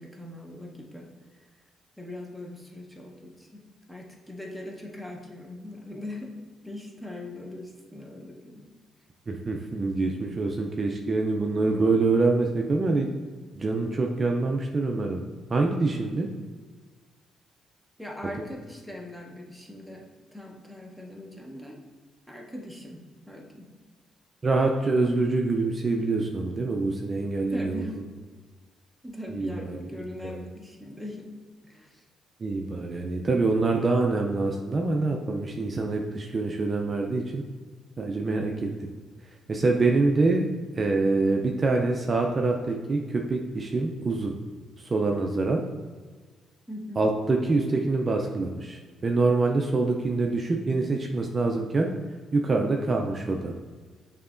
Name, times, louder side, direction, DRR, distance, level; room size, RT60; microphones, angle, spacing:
voice 1, 0.0-1.4 2.0-3.6 3.9-6.3 6.6-8.6 18.0-20.0 20.3-21.8 22.3-23.7 27.5-28.0 29.0-31.3 31.6-32.0 38.3-38.7 46.7-47.0, left 1 dB, 5° left, 0 dB, 0.8 m, -40 dB
voice 2, 9.3-13.1 13.5-15.2 15.5-16.3 24.4-27.8 29.3-29.9 30.2-30.4 32.4-37.4 38.0-38.5 39.5-40.5 40.7-44.3 44.8-45.6 47.0-51.9 52.3-53.5, right 3 dB, 35° right, 2 dB, 0.4 m, -25 dB
6.7 x 2.8 x 2.5 m, 1.4 s
cardioid pair, 90°, 0 cm